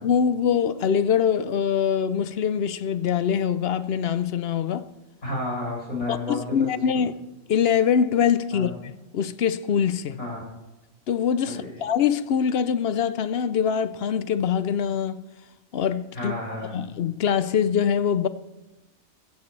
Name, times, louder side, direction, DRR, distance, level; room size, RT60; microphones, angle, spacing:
voice 1, 0.0-4.9 6.1-7.1 7.5-10.2 11.1-15.3 15.7-16.3 16.7-18.3, left 8 dB, 60° left, 0.7 m, -23 dB
voice 2, 5.2-7.0 8.5-8.7 10.2-10.4 11.4-11.7 16.1-16.7, left 2 dB, 75° left, 6.2 m, -31 dB
15.5 x 14.5 x 3.2 m
omnidirectional pair, 1.4 m